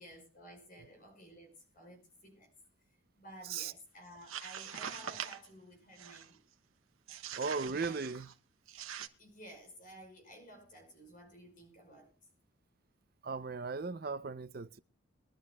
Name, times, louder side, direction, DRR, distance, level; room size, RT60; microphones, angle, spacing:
voice 1, 0.0-2.5 3.2-6.4 7.9-8.0 9.2-12.2, equal, 40° left, 5.2 m, -54 dB
sound 1, 4.1-5.5 6.0-6.4 7.1-8.3 8.7-9.1, right 8 dB, 80° right, 1.2 m, -43 dB
voice 2, 7.4-8.3 13.2-14.8, right 4 dB, 45° right, 0.5 m, -37 dB
23.0 x 11.5 x 2.3 m
head